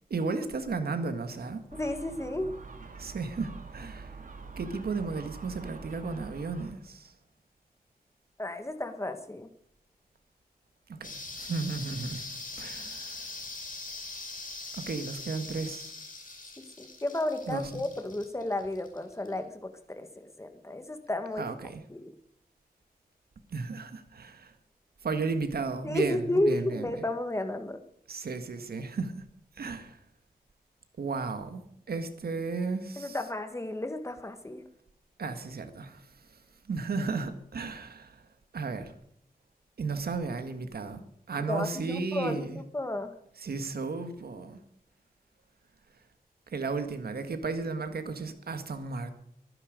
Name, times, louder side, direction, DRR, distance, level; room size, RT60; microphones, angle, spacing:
voice 1, 0.1-1.6 3.0-4.1 4.6-7.1 10.9-12.3 12.6-13.3 14.7-15.9 17.5-17.8 21.4-21.8 23.5-24.5 25.0-27.0 28.1-29.2 29.6-30.0 31.0-31.6 31.9-33.2 35.2-36.1 36.7-38.2 38.5-38.9 39.8-41.0 41.3-42.6 43.4-44.6 46.5-49.1, right 4 dB, 75° right, 1.7 m, -34 dB
voice 2, 1.7-2.6 8.4-9.5 16.8-21.5 21.9-22.1 25.8-27.8 33.0-34.6 41.5-42.5 42.7-43.1, left 1 dB, 15° left, 1.4 m, -32 dB
Gull seagull, 1.7-6.7, right 4 dB, 55° right, 2.1 m, -45 dB
sound 1, 11.0-19.3, left 3 dB, 55° left, 5.3 m, -42 dB
23.0 x 10.0 x 5.2 m
wide cardioid pair, 130°, 16 cm